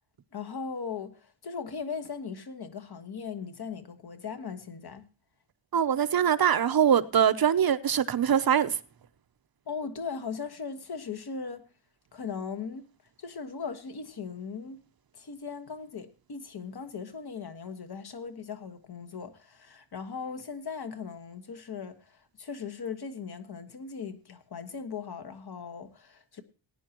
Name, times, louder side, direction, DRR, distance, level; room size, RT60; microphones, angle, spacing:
voice 1, 0.3-5.1 9.7-11.6 12.1-12.8 13.2-14.8 15.1-26.4, left 5 dB, 55° left, 1.6 m, -38 dB
voice 2, 5.7-8.7, right 8 dB, 50° right, 0.7 m, -23 dB
19.0 x 9.9 x 3.0 m
wide cardioid pair, 140°, 46 cm